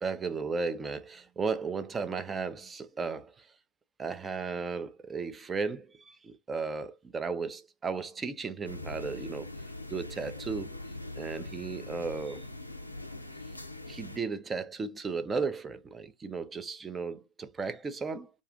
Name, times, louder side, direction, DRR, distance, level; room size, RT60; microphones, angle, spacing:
voice 1, 0.0-3.5 4.0-9.5 9.9-10.8 11.2-12.5 13.9-18.3, right 4 dB, 15° right, 0.4 m, -35 dB
sound 1, 8.6-14.2, left 2 dB, 85° left, 0.4 m, -42 dB
2.4 x 2.4 x 3.7 m
figure-of-eight pair, 90°, 0 cm